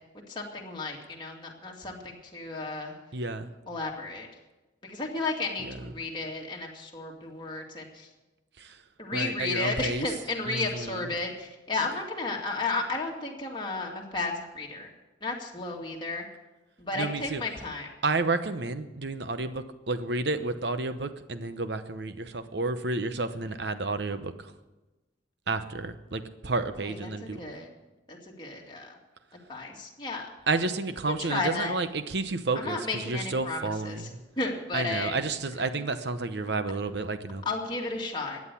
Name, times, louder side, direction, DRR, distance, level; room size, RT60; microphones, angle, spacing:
voice 1, 0.3-2.9 3.7-4.3 4.8-8.1 9.0-14.9 15.2-16.3 16.8-17.9 26.8-27.7 28.1-29.0 29.5-30.3 31.1-31.7 32.5-35.2 37.5-38.4, left 3 dB, 25° left, -1 dB, 2.3 m, -33 dB
voice 2, 3.1-3.5 5.6-5.8 8.6-8.8 9.1-10.1 10.5-11.1 17.0-17.4 18.0-24.5 25.5-27.5 30.5-34.2 34.7-37.4, right 3 dB, 60° right, 10 dB, 0.9 m, -31 dB
14.0 x 9.6 x 8.4 m, 1.1 s
head